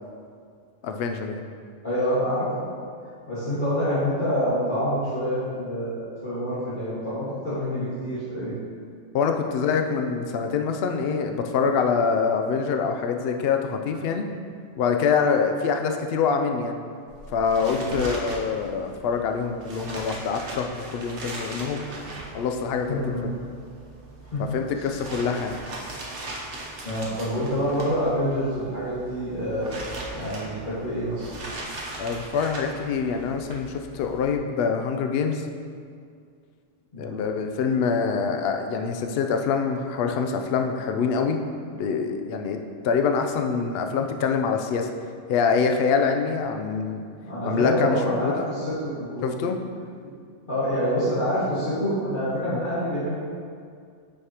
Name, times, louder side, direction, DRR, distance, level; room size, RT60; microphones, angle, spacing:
voice 1, 0.8-1.4 9.1-14.3 14.8-16.8 17.3-21.9 22.3-23.3 24.4-25.6 32.0-35.5 37.0-41.4 41.7-44.9 45.3-47.0 47.4-48.5 49.2-49.6 52.5-52.6, left 5 dB, 65° left, 5 dB, 0.7 m, -25 dB
voice 2, 1.8-2.7 3.3-8.6 17.7-18.0 22.9-23.2 24.2-24.4 24.7-24.9 26.8-29.7 30.1-31.3 36.9-37.4 47.2-49.3 50.0-50.1 50.5-53.2, equal, 40° left, -15 dB, 2.1 m, -27 dB
sound 1, 17.1-34.4, right 2 dB, 55° right, 1.1 m, -39 dB
8.0 x 5.6 x 2.9 m, 2.2 s
omnidirectional pair, 1.3 m